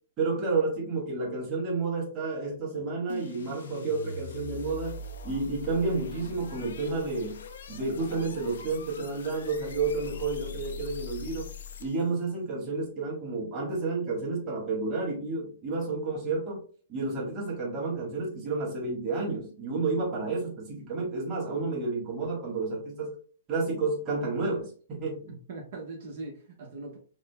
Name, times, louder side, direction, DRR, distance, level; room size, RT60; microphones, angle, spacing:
voice 1, 0.2-5.0 5.2-7.4 7.7-11.5 11.8-16.6 16.9-23.2 23.5-25.3, right 3 dB, 25° right, -4 dB, 1.4 m, -30 dB
sound 1, 3.1-12.2, left 6 dB, 75° left, 0.5 m, -42 dB
voice 2, 25.3-27.0, right 3 dB, 60° right, -2 dB, 0.9 m, -41 dB
4.9 x 2.1 x 2.2 m, 0.43 s
hypercardioid pair, 145°, 0 cm